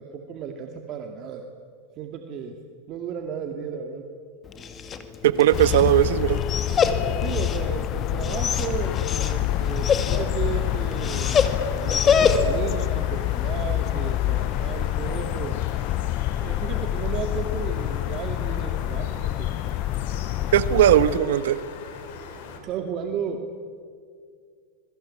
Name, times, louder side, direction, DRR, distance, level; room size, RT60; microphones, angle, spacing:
voice 1, 0.0-1.4 2.0-2.6 2.9-4.1 7.2-15.6 16.4-19.5 22.5-23.4, right 7 dB, 40° right, 5 dB, 2.2 m, -34 dB
Dog, 4.4-12.7, left 6 dB, 25° left, 2.3 m, -26 dB
voice 2, 5.2-6.4 20.5-21.6, right 12 dB, 75° right, 14 dB, 1.2 m, -18 dB
sound 1, 5.5-21.2, left 14 dB, 40° left, 0.6 m, -27 dB
sound 2, 8.3-22.6, left 5 dB, 65° left, 5.2 m, -40 dB
27.0 x 23.0 x 8.7 m, 2.1 s
supercardioid pair, 130°, 0 cm